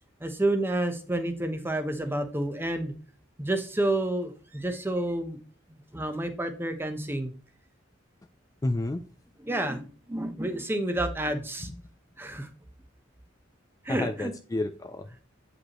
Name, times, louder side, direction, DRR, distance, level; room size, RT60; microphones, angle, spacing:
voice 1, 0.2-2.9 3.4-5.4 5.7-7.3 9.4-11.7 12.2-12.5 13.8-14.3, right 1 dB, 10° right, 7 dB, 0.8 m, -29 dB
voice 2, 8.6-9.0 13.9-15.2, left 2 dB, 15° left, 7 dB, 0.3 m, -30 dB
8.0 x 5.1 x 2.9 m, 0.39 s
head